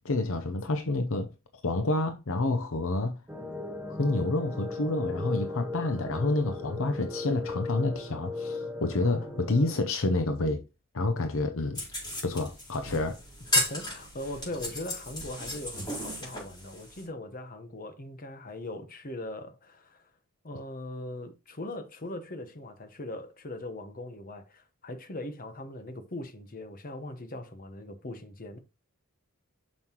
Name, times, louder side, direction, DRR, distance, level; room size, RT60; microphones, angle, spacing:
voice 1, 0.0-1.3 1.6-3.1 3.9-10.6 10.9-11.8 12.2-13.2, left 2 dB, 60° left, 0.8 m, -28 dB
sound 1, 3.3-9.7, left 3 dB, 10° right, 1.0 m, -37 dB
voice 2, 9.0-9.5 13.5-20.1 20.4-28.6, left 1 dB, 40° left, 1.1 m, -40 dB
sound 2, 11.7-17.0, left 1 dB, 20° left, 4.6 m, -34 dB
7.3 x 6.3 x 3.0 m
head